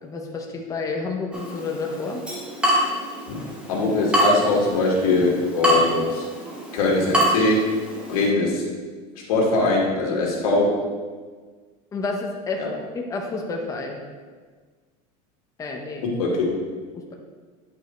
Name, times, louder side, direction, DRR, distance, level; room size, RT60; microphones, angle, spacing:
voice 1, 0.0-2.2 11.9-12.6 12.9-14.0 15.6-16.0, left 3 dB, 20° left, 1 dB, 0.8 m, -30 dB
Water tap faucet / Drip, 1.3-8.3, right 1 dB, 5° right, 1.2 m, -26 dB
voice 2, 3.7-6.3 6.7-7.6 8.1-8.6 9.3-10.7 12.6-12.7 16.0-16.5, left 2 dB, 85° left, -3 dB, 2.1 m, -21 dB
9.0 x 5.0 x 3.2 m, 1.5 s
supercardioid pair, 140°, 18 cm